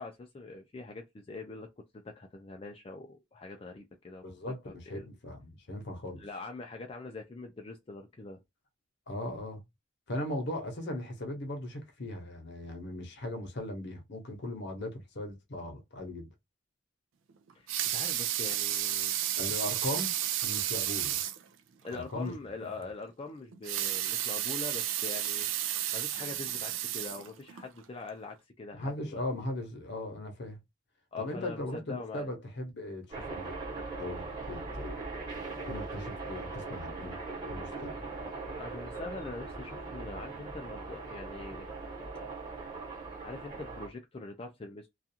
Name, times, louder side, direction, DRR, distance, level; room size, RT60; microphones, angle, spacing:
voice 1, 0.0-1.7 2.0-4.2 4.7-5.1 6.2-8.4 17.5-19.1 21.8-25.5 25.9-29.2 31.1-32.3 38.6-41.7 42.2-42.3 43.2-44.9, left 3 dB, 30° left, 0.4 m, -43 dB
voice 2, 4.2-6.3 9.1-9.6 10.1-16.3 19.4-20.2 20.4-21.2 21.9-22.9 28.7-30.6 31.2-33.5 34.0-35.0 35.7-37.2 37.5-38.1, left 1 dB, 60° left, 0.8 m, -38 dB
Water tap faucet / Sink (filling or washing) / Liquid, 17.5-21.4 21.9-22.0 22.3-22.4 23.5-27.7 28.2-28.3, right 12 dB, 90° right, 0.4 m, -32 dB
sound 1, 33.1-43.9, right 3 dB, 25° right, 1.1 m, -40 dB
2.4 x 2.3 x 2.7 m
head